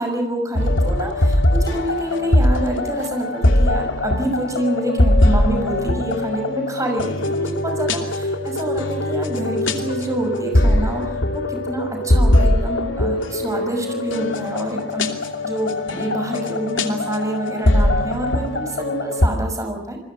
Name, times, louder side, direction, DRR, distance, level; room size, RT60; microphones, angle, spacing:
voice 1, 0.0-11.0 11.3-15.1 15.4-20.0, right 1 dB, 15° right, 4 dB, 6.0 m, -27 dB
sound 1, 0.6-19.3, left 1 dB, 85° left, 2.8 m, -21 dB
28.5 x 21.5 x 6.4 m, 0.84 s
head